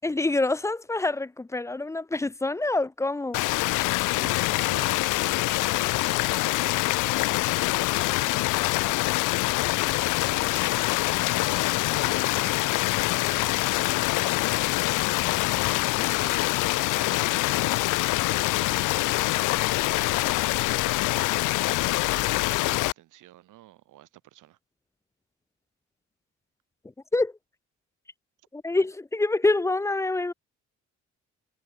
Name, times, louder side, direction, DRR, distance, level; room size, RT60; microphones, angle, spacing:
voice 1, 0.0-3.4 27.1-27.3 28.5-30.3, left 2 dB, 10° left, 0.4 m, -26 dB
sound 1, 3.3-22.9, left 20 dB, 85° left, 0.5 m, -25 dB
voice 2, 4.2-6.9 7.9-8.6 10.0-14.5 15.9-19.5 19.8-20.5 21.1-24.6, right 15 dB, 85° right, 7.2 m, -49 dB
cardioid pair, 90°, 30 cm